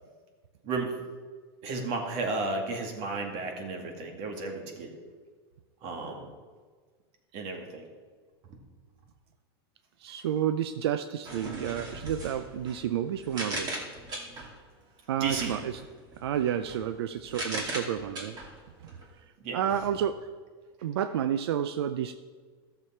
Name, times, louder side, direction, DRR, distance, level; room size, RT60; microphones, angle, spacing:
voice 1, 0.6-1.0 1.6-4.9 5.8-6.3 7.3-7.9 15.2-15.5 19.4-19.6, right 3 dB, 50° right, 3 dB, 2.1 m, -33 dB
voice 2, 10.0-13.7 15.1-15.8 16.2-18.4 19.5-20.3 20.8-22.1, right 9 dB, 90° right, 11 dB, 0.5 m, -30 dB
sound 1, 11.2-14.6 15.2-19.1, right 1 dB, 30° right, 2.4 m, -39 dB
13.5 x 6.9 x 4.3 m, 1.5 s
supercardioid pair, 130°, 13 cm